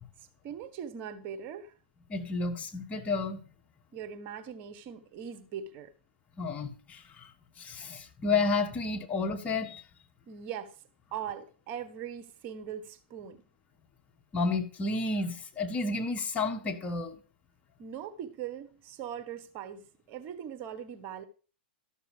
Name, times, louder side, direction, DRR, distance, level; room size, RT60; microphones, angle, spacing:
voice 1, 0.4-1.7 3.9-5.9 10.3-10.8 11.1-13.4 17.8-21.2, right 8 dB, 40° right, 1.1 m, -40 dB
voice 2, 2.1-3.4 6.4-7.3 7.6-9.8 14.3-17.2, left 3 dB, 25° left, 1.3 m, -31 dB
13.0 x 6.5 x 4.9 m
hypercardioid pair, 110°, 6 cm